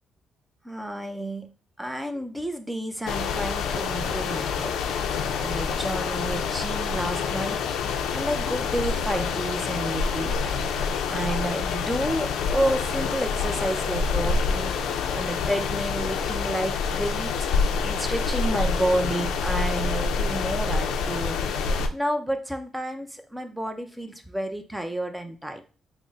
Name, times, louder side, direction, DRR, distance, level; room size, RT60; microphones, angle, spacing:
voice 1, 0.6-1.5 1.8-4.8 5.4-10.5 11.1-25.6, right 1 dB, 5° right, 7 dB, 0.5 m, -30 dB
sound 1, 3.1-21.9, left 5 dB, 80° left, 0.4 m, -27 dB
3.6 x 2.0 x 3.9 m, 0.35 s
cardioid pair, 90°, 0 cm